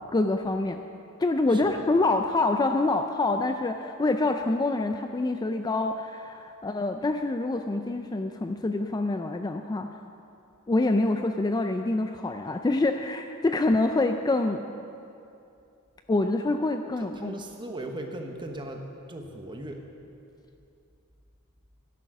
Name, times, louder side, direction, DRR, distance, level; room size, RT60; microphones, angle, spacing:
voice 1, 0.1-0.8 1.2-9.9 10.7-14.6 16.1-17.3, left 2 dB, 20° left, 6 dB, 0.3 m, -26 dB
voice 2, 17.2-19.8, right 1 dB, 20° right, 3 dB, 1.0 m, -38 dB
12.5 x 11.0 x 5.4 m, 2.6 s
head